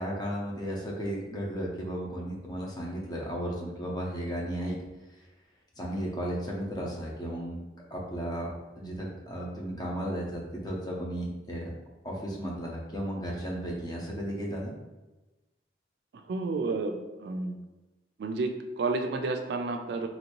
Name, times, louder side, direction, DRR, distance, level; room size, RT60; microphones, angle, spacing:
voice 1, 0.0-4.8 5.8-7.6 7.9-8.5 8.8-11.7 12.0-14.7, equal, 25° left, -2 dB, 0.6 m, -34 dB
voice 2, 16.3-17.6 18.2-20.1, right 3 dB, 70° right, 6 dB, 0.3 m, -31 dB
3.0 x 2.6 x 2.9 m, 1.1 s
head